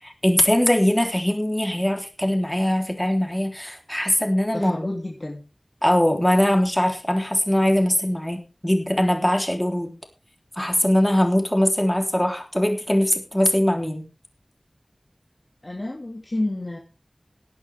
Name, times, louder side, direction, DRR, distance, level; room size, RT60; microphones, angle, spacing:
voice 1, 0.0-4.7 5.8-9.9 10.6-14.1, left 1 dB, 15° left, 3 dB, 3.7 m, -21 dB
voice 2, 4.5-5.4 15.6-16.8, left 1 dB, 45° left, -1 dB, 2.8 m, -29 dB
17.5 x 11.0 x 3.6 m, 0.31 s
wide cardioid pair, 50°, 0 cm